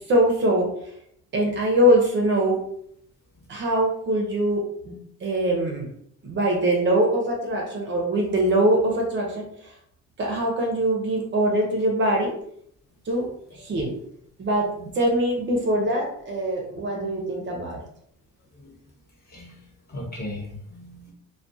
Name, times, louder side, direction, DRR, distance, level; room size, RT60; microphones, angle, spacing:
voice 1, 0.1-0.7 1.3-2.6 3.5-4.9 5.2-5.9 6.2-9.5 10.2-12.3 13.0-13.9 14.4-17.8, right 1 dB, 35° right, -1 dB, 0.6 m, -23 dB
voice 2, 19.3-19.6 19.9-21.1, left 1 dB, 30° left, -3 dB, 0.9 m, -37 dB
2.2 x 2.2 x 2.6 m, 0.68 s
cardioid pair, 140°, 31 cm